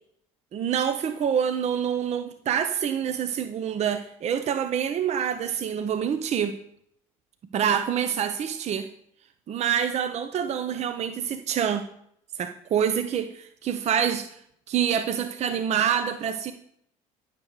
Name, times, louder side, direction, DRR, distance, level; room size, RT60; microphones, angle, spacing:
voice 1, 0.5-6.6 7.5-8.9 9.5-11.9 12.4-14.4 14.7-16.5, right 8 dB, 40° right, 10 dB, 0.7 m, -26 dB
10.5 x 6.6 x 4.8 m, 0.72 s
hypercardioid pair, 60°, 17 cm